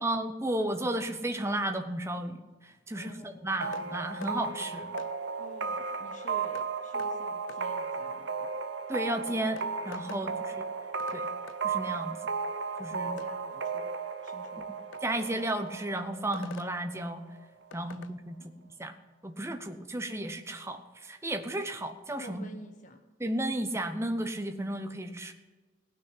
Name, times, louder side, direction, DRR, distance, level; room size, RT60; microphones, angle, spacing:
voice 1, 0.0-4.9 8.9-10.3 11.1-11.3 11.6-12.2 12.8-13.2 15.0-17.2 17.7-18.4 18.8-18.9 19.2-22.5 23.2-25.3, right 1 dB, 15° right, 7 dB, 0.9 m, -33 dB
voice 2, 2.9-3.6 5.4-8.5 10.0-10.4 12.9-13.9 14.2-14.7 17.7-18.0 22.2-23.0, left 1 dB, 40° left, 5 dB, 1.0 m, -49 dB
sound 1, 3.6-17.1, right 5 dB, 65° right, 0.7 m, -35 dB
sound 2, 3.7-3.9 4.2-4.4 5.0-5.1 6.6-6.7 7.0-7.1 7.5-7.6 9.0-9.1 9.6-10.3 11.0-11.2 11.5-11.6 13.2-13.3 14.9-15.1 16.3-16.7 17.7-18.1, left 6 dB, 75° left, 0.5 m, -46 dB
17.0 x 6.2 x 9.9 m, 1.3 s
head